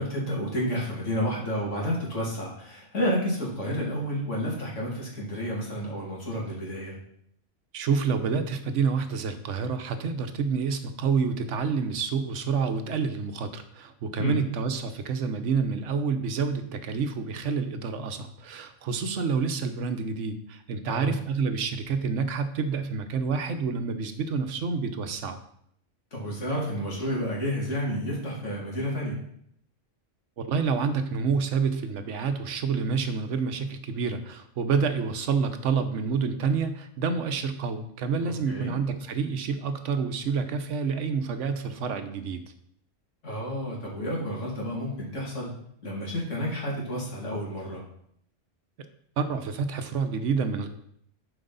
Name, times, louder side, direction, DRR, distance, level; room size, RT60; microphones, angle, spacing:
voice 1, 0.0-7.0 14.2-14.4 20.8-21.2 26.1-29.2 38.2-38.8 43.2-45.5 45.8-47.8, equal, 85° left, -3 dB, 2.8 m, -30 dB
voice 2, 7.7-25.4 30.4-42.4 49.2-50.7, right 5 dB, 80° right, 8 dB, 1.1 m, -28 dB
11.5 x 5.1 x 4.0 m, 0.70 s
omnidirectional pair, 1.2 m